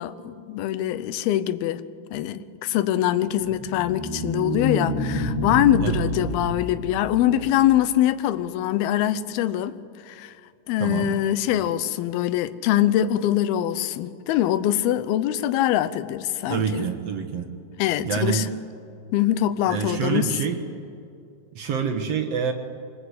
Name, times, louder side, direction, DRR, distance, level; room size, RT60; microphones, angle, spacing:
voice 1, 0.0-1.8 2.1-9.8 10.1-10.3 10.7-16.8 17.8-18.5 19.1-20.3, left 12 dB, 75° left, 2.5 m, -23 dB
sound 1, 3.3-7.8, equal, 40° left, 6.7 m, -28 dB
voice 2, 10.8-11.1 16.5-17.5 18.0-18.5 19.7-20.6 21.5-22.5, right 7 dB, 60° right, 1.7 m, -26 dB
24.5 x 21.0 x 8.3 m
omnidirectional pair, 4.7 m